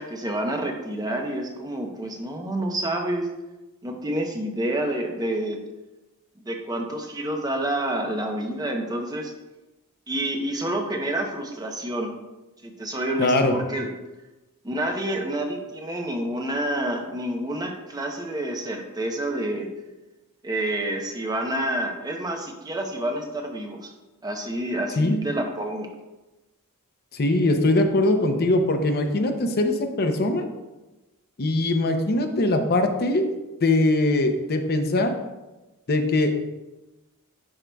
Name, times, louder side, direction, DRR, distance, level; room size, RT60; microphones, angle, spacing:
voice 1, 0.0-3.3 3.8-5.6 6.5-9.3 10.1-12.1 12.6-13.9 14.6-19.7 20.4-23.9 24.2-25.9, right 1 dB, 20° right, 2 dB, 0.7 m, -28 dB
voice 2, 13.2-13.5 25.0-25.2 27.1-30.5 31.4-33.3 33.6-35.1 35.9-36.4, left 2 dB, 45° left, 5 dB, 0.6 m, -21 dB
9.9 x 4.8 x 2.3 m, 1.1 s
head